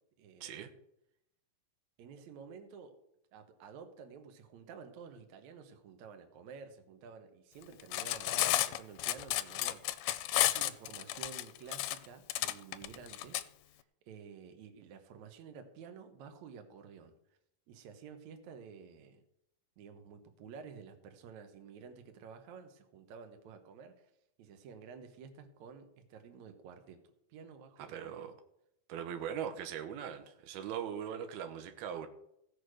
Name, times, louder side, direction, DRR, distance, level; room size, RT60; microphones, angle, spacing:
voice 1, 0.2-0.5 2.0-3.0 3.3-13.5 13.7-17.1 17.7-19.2 19.8-24.1 24.4-27.0 27.3-28.3, right 6 dB, 60° right, 6 dB, 2.2 m, -51 dB
Cutlery silverware, 7.8-13.4, left 15 dB, 90° left, 2.5 m, -32 dB
voice 2, 27.8-28.3 28.9-32.1, right 8 dB, 85° right, 8 dB, 2.9 m, -40 dB
15.5 x 6.7 x 6.3 m, 0.78 s
omnidirectional pair, 4.3 m